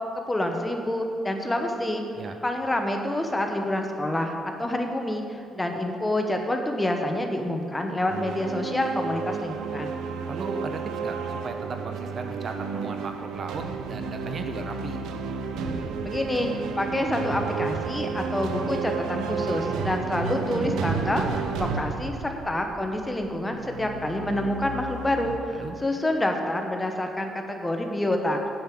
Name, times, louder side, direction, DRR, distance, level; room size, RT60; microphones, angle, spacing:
voice 1, 0.3-2.0 2.4-4.3 4.6-9.9 16.0-16.5 16.8-28.4, left 1 dB, 15° left, 3 dB, 1.0 m, -27 dB
sound 1, 8.1-25.4, right 5 dB, 90° right, 0.6 m, -32 dB
voice 2, 10.2-15.0 25.5-25.8, right 3 dB, 50° right, 6 dB, 0.8 m, -36 dB
8.8 x 5.5 x 7.6 m, 2.5 s
cardioid pair, 90°, 0 cm